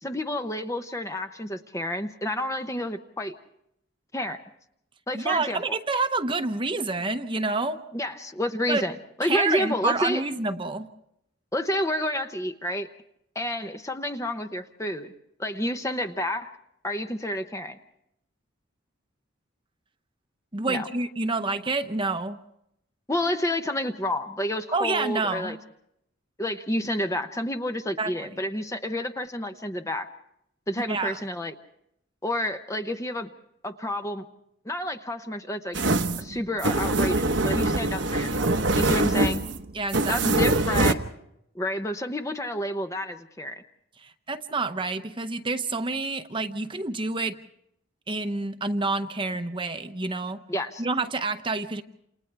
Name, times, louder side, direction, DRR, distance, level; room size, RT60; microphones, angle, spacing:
voice 1, 0.0-3.3 4.1-4.4 5.1-5.6 7.9-10.2 11.5-12.9 13.3-15.1 15.4-16.5 16.8-17.8 20.7-20.9 23.1-25.6 26.4-30.1 30.7-31.5 32.2-33.3 33.6-34.2 34.6-35.8 36.2-38.5 38.8-39.4 40.1-41.0 41.5-43.6 50.5-50.8, left 1 dB, 15° left, 7 dB, 0.8 m, -29 dB
voice 2, 5.1-7.8 8.7-8.8 9.2-10.9 20.5-22.4 24.7-25.6 28.0-28.3 30.9-31.2 39.7-40.2 44.0-47.4 48.1-50.4 50.8-51.8, right 3 dB, 25° right, 8 dB, 0.8 m, -28 dB
sound 1, 35.7-40.9, right 2 dB, 60° right, 1.0 m, -24 dB
29.0 x 28.0 x 3.4 m, 0.77 s
head